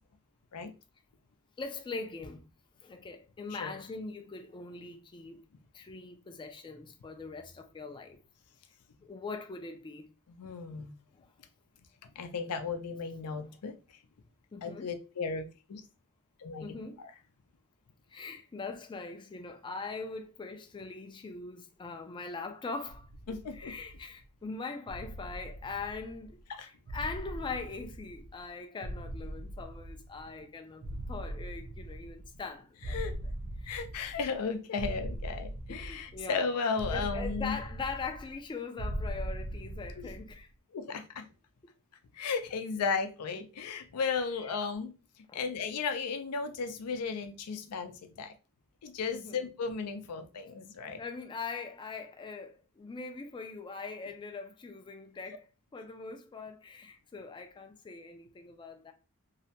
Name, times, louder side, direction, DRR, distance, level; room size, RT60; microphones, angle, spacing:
voice 1, 1.6-2.4 2.8-5.4 5.7-8.2 9.0-10.0 11.2-11.3 13.3-13.5 14.5-14.9 16.6-17.0 18.1-23.1 23.5-33.0 33.6-33.8 35.7-36.5 36.9-40.5 44.4-44.6 45.3-45.4 49.1-49.4 51.0-55.4 55.7-58.9, left 4 dB, 20° left, 0.3 m, -41 dB
voice 2, 10.4-10.9 12.2-13.7 14.6-15.8 16.4-16.7 17.0-17.1 23.3-23.7 26.5-26.7 32.9-33.2 33.7-37.6 40.0-40.1 40.7-41.2 42.1-44.9 45.3-48.3 48.8-51.0, left 5 dB, 90° left, 0.4 m, -35 dB
sound 1, 22.9-24.2 24.9-26.4 26.9-28.5 28.8-30.4 30.8-32.5 32.8-34.4 34.8-36.4 36.8-38.4 38.8-40.4, right 1 dB, 55° right, 0.4 m, -40 dB
2.7 x 2.1 x 2.7 m
head